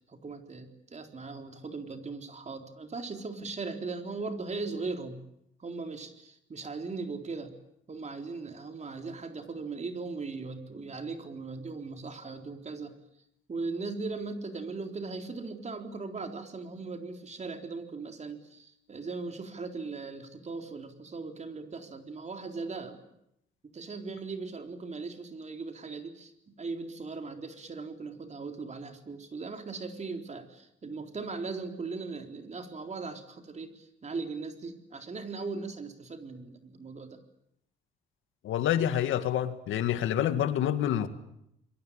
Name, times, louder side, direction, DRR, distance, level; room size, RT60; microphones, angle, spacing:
voice 1, 0.1-5.2 5.6-7.5 7.9-12.9 13.5-23.0 23.7-37.2, right 4 dB, 35° right, 4.0 m, -39 dB
voice 2, 38.4-41.1, left 10 dB, 80° left, 2.1 m, -27 dB
28.0 x 23.0 x 8.8 m
cardioid pair, 90°, 20 cm